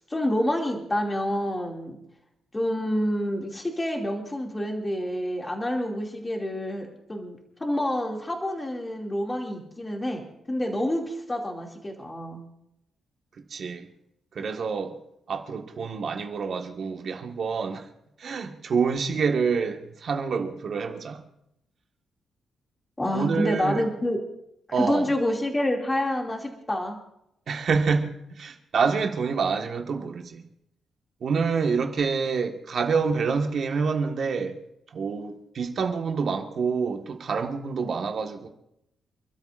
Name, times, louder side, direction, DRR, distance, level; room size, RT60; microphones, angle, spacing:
voice 1, 0.1-2.0 2.5-10.2 10.5-12.4 23.0-24.2 24.8-27.0, left 1 dB, 15° left, 2.6 m, -28 dB
voice 2, 13.5-13.9 14.3-15.0 15.3-17.9 18.2-21.2 23.1-23.8 24.7-25.1 27.5-30.4 31.2-34.6 34.9-38.5, right 5 dB, 50° right, 1.6 m, -27 dB
28.5 x 13.0 x 2.6 m
cardioid pair, 140°, 0 cm